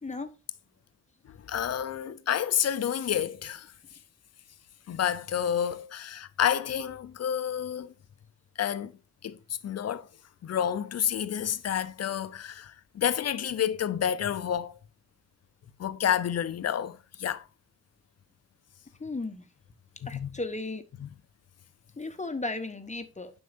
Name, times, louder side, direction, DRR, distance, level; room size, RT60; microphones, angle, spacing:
voice 1, 1.3-3.7 4.9-7.9 8.6-9.0 9.2-9.4 9.6-10.1 10.4-14.7 15.8-17.4 20.0-20.3 21.0-21.1, left 9 dB, 50° left, 0.7 m, -29 dB
voice 2, 19.0-19.4 20.1-20.8 22.0-23.3, left 2 dB, 20° left, 1.1 m, -35 dB
9.1 x 6.3 x 2.6 m
hypercardioid pair, 45°, 32 cm